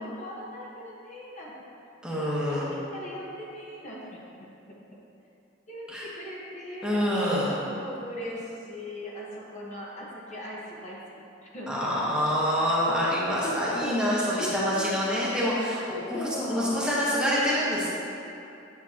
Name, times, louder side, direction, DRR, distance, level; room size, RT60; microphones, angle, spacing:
voice 1, 0.0-1.5 2.2-4.2 4.7-4.8 5.7-7.0 7.8-11.9 13.4-13.6 13.8-14.0 14.3-15.0 16.1-16.9, equal, 40° left, -5 dB, 1.2 m, -39 dB
voice 2, 2.0-2.7 5.9-6.0 6.8-7.6 11.7-17.9, equal, 5° right, -7 dB, 1.1 m, -26 dB
8.5 x 6.5 x 2.9 m, 2.8 s
head